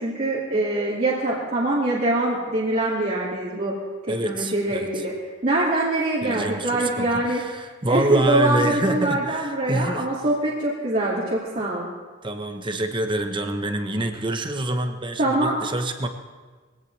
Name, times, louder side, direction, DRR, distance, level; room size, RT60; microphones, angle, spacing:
voice 1, 0.0-3.7 4.2-5.1 5.4-7.4 7.9-11.9 15.2-15.6, right 2 dB, 40° right, -7 dB, 2.4 m, -23 dB
voice 2, 4.1-5.0 6.2-10.1 12.2-16.1, right 1 dB, 25° right, 6 dB, 1.0 m, -26 dB
21.5 x 16.5 x 3.3 m, 1.4 s
head